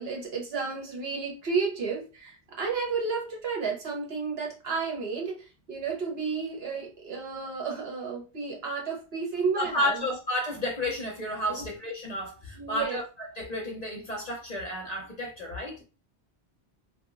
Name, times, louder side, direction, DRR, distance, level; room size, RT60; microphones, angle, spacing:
voice 1, 0.0-10.2 11.5-11.7 12.5-13.0 15.8-15.9, right 5 dB, 65° right, 1.2 m, -32 dB
voice 2, 9.5-15.8, left 1 dB, 45° left, 0.7 m, -32 dB
2.8 x 2.4 x 2.5 m
omnidirectional pair, 1.1 m